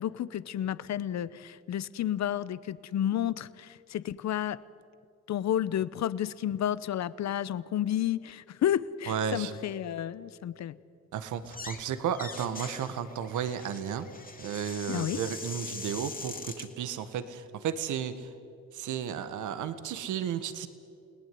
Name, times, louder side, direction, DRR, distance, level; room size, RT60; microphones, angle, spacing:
voice 1, 0.0-4.6 5.3-10.8 14.9-15.2, left 11 dB, 65° left, 17 dB, 1.0 m, -31 dB
voice 2, 9.1-9.5 11.1-14.1 14.4-18.3 18.7-20.7, right 8 dB, 80° right, 10 dB, 1.7 m, -33 dB
sound 1, 11.4-11.8 12.1-16.7, left 4 dB, 30° left, 2.9 m, -42 dB
29.5 x 18.5 x 9.4 m, 2.5 s
cardioid pair, 90°, 30 cm